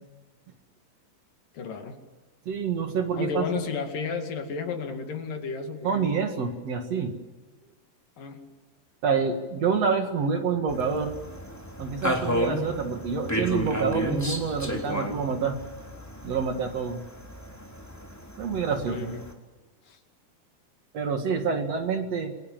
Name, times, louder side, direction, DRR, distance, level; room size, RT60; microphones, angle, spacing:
voice 1, 1.5-2.0 3.2-6.2 8.2-8.4 18.9-19.2 19.9-20.0, left 5 dB, 70° left, 5 dB, 4.0 m, -33 dB
voice 2, 2.5-3.6 5.8-7.1 9.0-11.1 11.8-15.6 16.2-17.0 18.4-19.1 20.9-22.3, right 5 dB, 50° right, 6 dB, 2.7 m, -27 dB
sound 1, 10.7-19.3, equal, 5° left, 3.0 m, -33 dB
29.0 x 23.0 x 7.5 m, 1.2 s
omnidirectional pair, 4.0 m